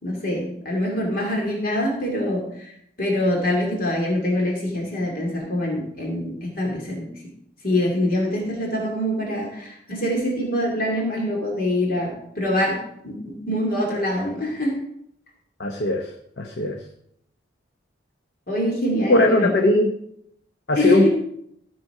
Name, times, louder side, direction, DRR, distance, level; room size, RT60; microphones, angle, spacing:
voice 1, 0.0-2.7 3.0-7.0 7.6-12.8 13.0-14.7 18.5-19.5 20.8-21.1, left 1 dB, 50° left, -1 dB, 2.5 m, -24 dB
voice 2, 15.6-16.1 16.4-16.8 19.1-19.9 20.7-21.1, left 2 dB, 70° left, 3 dB, 0.9 m, -19 dB
13.5 x 6.1 x 4.8 m, 0.75 s
head